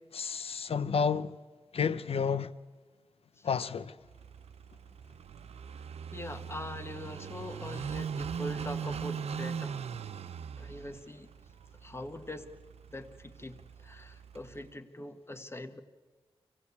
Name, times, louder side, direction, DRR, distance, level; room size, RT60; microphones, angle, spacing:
voice 1, 0.1-1.3 1.7-2.5 3.4-3.9, left 6 dB, 70° left, 0.7 m, -30 dB
Car passing by / Idling, 4.1-14.7, right 7 dB, 80° right, 0.6 m, -40 dB
voice 2, 6.1-9.8 10.6-11.3 11.8-12.5 12.9-15.8, left 1 dB, 25° left, 1.5 m, -43 dB
25.0 x 17.0 x 8.4 m
cardioid pair, 60°, 10 cm